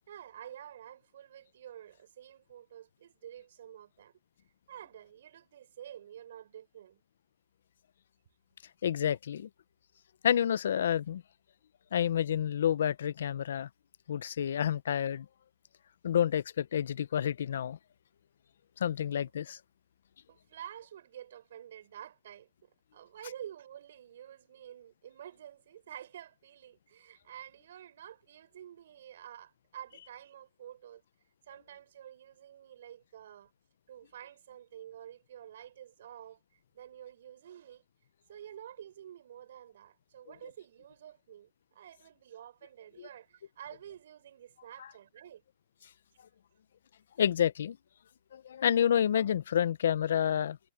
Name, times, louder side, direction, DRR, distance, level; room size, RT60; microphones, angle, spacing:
voice 1, 0.0-4.1 4.7-7.0 20.3-31.0 31.5-33.5 33.9-36.4 36.7-37.8 38.3-45.4, right 10 dB, 70° right, 6.2 m, -49 dB
voice 2, 8.8-9.5 10.2-11.2 11.9-13.7 14.1-15.3 16.0-17.8 18.8-19.6 43.0-43.1 47.2-47.8 48.3-50.6, left 9 dB, 75° left, 0.6 m, -29 dB
hypercardioid pair, 145°, 0 cm